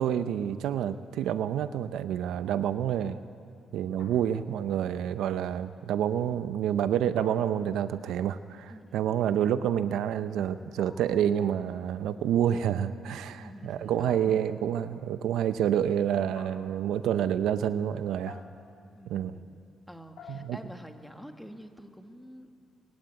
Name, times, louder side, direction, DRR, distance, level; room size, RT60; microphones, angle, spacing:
voice 1, 0.0-3.2 3.7-18.4 19.1-19.3 20.3-20.6, right 9 dB, 80° right, 12 dB, 0.6 m, -28 dB
sound 1, 4.0-4.6 7.2-8.0 10.8-11.4 14.1-14.8 16.3-16.9 18.3-18.8 20.2-20.8, left 6 dB, 70° left, 2.4 m, -51 dB
voice 2, 8.7-9.2 13.1-14.3 18.9-19.6 19.9-22.5, equal, ahead, 5 dB, 1.8 m, -48 dB
21.5 x 15.5 x 9.3 m, 2.3 s
cardioid pair, 90°, 0 cm